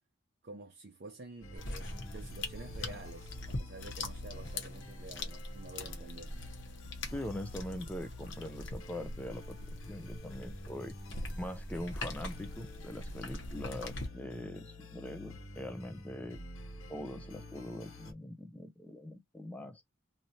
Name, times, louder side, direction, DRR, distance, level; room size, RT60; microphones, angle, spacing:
voice 1, 0.4-6.3, right 2 dB, 45° right, 0.5 m, -49 dB
sound 1, 1.4-18.1, left 2 dB, 75° left, 1.4 m, -49 dB
sound 2, 1.6-14.1, left 2 dB, 60° left, 0.9 m, -42 dB
voice 2, 7.1-9.6 9.9-11.0 11.4-16.4 16.9-19.8, left 1 dB, 5° left, 0.4 m, -42 dB
3.1 x 2.7 x 2.7 m
head